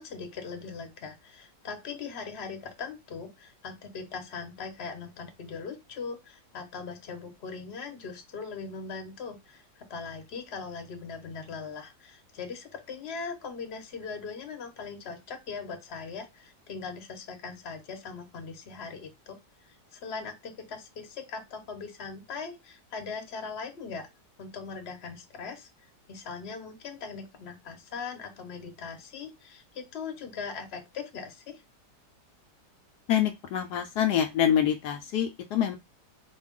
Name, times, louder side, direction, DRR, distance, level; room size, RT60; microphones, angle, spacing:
voice 1, 0.0-24.1 24.4-25.7 26.1-31.6, left 5 dB, 45° left, 5 dB, 1.0 m, -40 dB
voice 2, 33.1-35.8, left 9 dB, 75° left, 5 dB, 1.1 m, -26 dB
5.0 x 2.3 x 3.6 m, 0.21 s
omnidirectional pair, 1.8 m